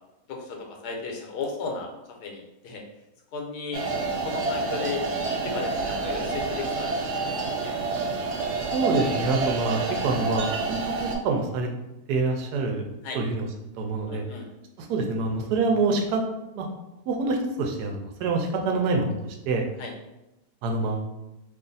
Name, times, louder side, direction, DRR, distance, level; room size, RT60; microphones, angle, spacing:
voice 1, 0.8-1.9 2.2-2.8 3.3-3.8 4.2-7.7 9.0-9.2 13.0-13.2 14.1-14.4 19.8-19.9, left 4 dB, 85° left, 1 dB, 1.2 m, -35 dB
sound 1, 3.7-11.1, right 3 dB, 70° right, 0.7 m, -28 dB
voice 2, 8.7-11.7 12.1-12.9 13.1-13.5 13.8-14.2 14.8-16.2 16.5-16.7 17.1-19.1 19.5-19.7 20.6-21.1, right 3 dB, 85° right, 3 dB, 1.2 m, -26 dB
2.9 x 2.5 x 3.8 m, 0.95 s
omnidirectional pair, 1.7 m